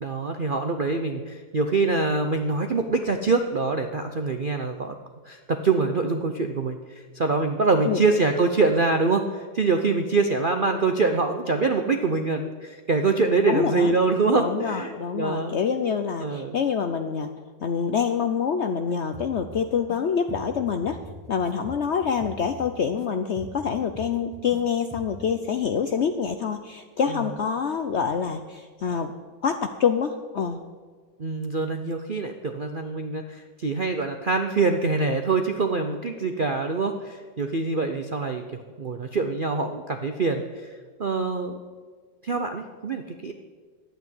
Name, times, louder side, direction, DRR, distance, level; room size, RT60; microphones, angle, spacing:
voice 1, 0.0-5.0 5.2-15.6 16.2-16.6 27.1-27.2 31.2-38.4 38.8-41.6 42.2-43.3, right 3 dB, 60° right, 5 dB, 0.5 m, -25 dB
voice 2, 13.4-13.9 14.4-17.3 17.6-21.0 21.3-29.1 29.4-30.6, left 6 dB, 85° left, 7 dB, 0.6 m, -26 dB
sound 1, 19.1-20.0 20.3-23.1 23.4-24.6 24.9-25.3, right 1 dB, 10° right, 1.5 m, -42 dB
11.0 x 9.2 x 9.4 m, 1.5 s
omnidirectional pair, 2.1 m